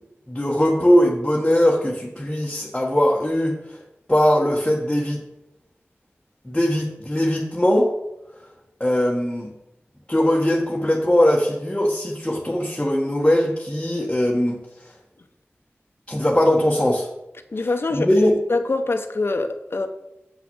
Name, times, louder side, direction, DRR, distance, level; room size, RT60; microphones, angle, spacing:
voice 1, 0.3-3.8 4.1-5.2 6.4-7.9 8.8-9.5 10.1-14.6 16.1-17.1 17.9-18.4, left 1 dB, 15° left, 1.5 m, -20 dB
voice 2, 17.5-19.9, left 3 dB, 60° left, 1.0 m, -24 dB
7.6 x 5.9 x 7.1 m
wide cardioid pair, 55°, 4 cm